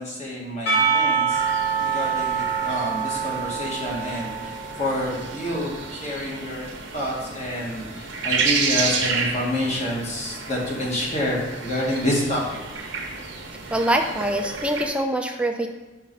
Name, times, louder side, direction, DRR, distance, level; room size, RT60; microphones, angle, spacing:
voice 1, 0.0-1.4 1.8-4.5 4.8-12.6, left 1 dB, 35° left, -4 dB, 1.6 m, -28 dB
Percussion / Church bell, 0.7-5.7, right 6 dB, 60° left, 2.1 m, -25 dB
sound 1, 1.3-14.9, right 4 dB, 75° right, 0.9 m, -31 dB
voice 2, 13.7-15.7, right 1 dB, 5° right, 3 dB, 0.5 m, -24 dB
5.3 x 5.3 x 4.0 m, 1.2 s
head